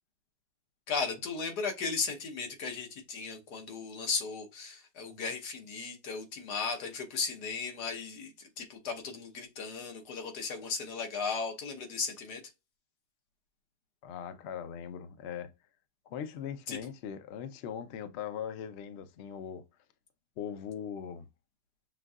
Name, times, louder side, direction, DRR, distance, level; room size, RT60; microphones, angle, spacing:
voice 1, 0.9-12.4 16.7-16.8, left 5 dB, 85° left, 1.6 m, -36 dB
voice 2, 14.0-15.5 16.1-19.6 20.4-21.3, left 8 dB, 65° left, 0.6 m, -40 dB
5.9 x 2.6 x 2.3 m
omnidirectional pair, 1.7 m